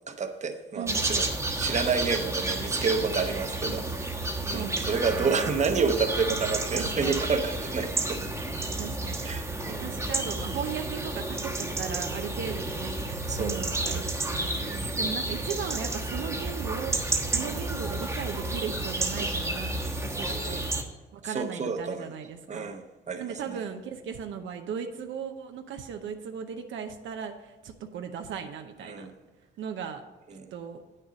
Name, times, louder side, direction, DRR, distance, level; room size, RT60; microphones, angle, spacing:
voice 1, 0.1-1.3 1.6-4.1 4.5-8.2 9.2-10.0 13.3-14.0 14.5-15.1 20.3-20.6 21.2-22.1 22.5-23.2 28.8-29.1 30.4-30.5, right 5 dB, 35° right, 7 dB, 0.9 m, -30 dB
voice 2, 0.7-1.1 3.3-3.8 4.5-5.5 6.7-7.3 8.8-9.3 9.6-13.0 13.4-14.6 15.0-19.7 20.0-20.6 21.1-22.7 23.2-29.1 29.6-30.0 30.5-30.8, right 7 dB, 75° right, 5 dB, 0.8 m, -37 dB
sound 1, 0.9-20.8, right 2 dB, 15° right, 1.2 m, -31 dB
8.6 x 6.6 x 5.2 m, 1.2 s
cardioid pair, 90°, 20 cm